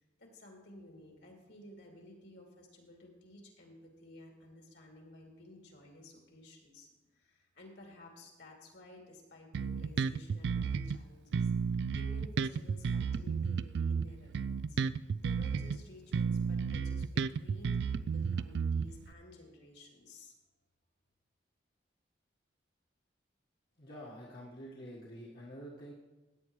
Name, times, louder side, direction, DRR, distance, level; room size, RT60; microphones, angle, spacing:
voice 1, 0.2-14.8 15.2-20.3, left 1 dB, 70° left, 0 dB, 2.7 m, -54 dB
Bass guitar, 9.5-11.0 11.3-15.8 16.1-19.1, right 6 dB, 65° right, 0.3 m, -33 dB
voice 2, 23.8-25.9, equal, 55° left, -6 dB, 1.6 m, -47 dB
15.5 x 9.5 x 3.2 m, 1.1 s
head